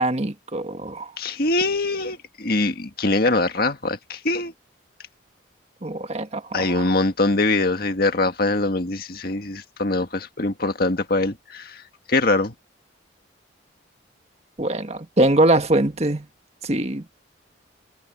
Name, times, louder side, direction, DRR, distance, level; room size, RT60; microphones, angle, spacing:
voice 1, 0.0-1.1 5.8-6.9 14.6-16.3 16.6-17.1, right 1 dB, 35° right, 1.5 m, -22 dB
voice 2, 1.2-4.5 6.5-11.8 12.1-12.5, left 2 dB, 50° left, 1.8 m, -23 dB
head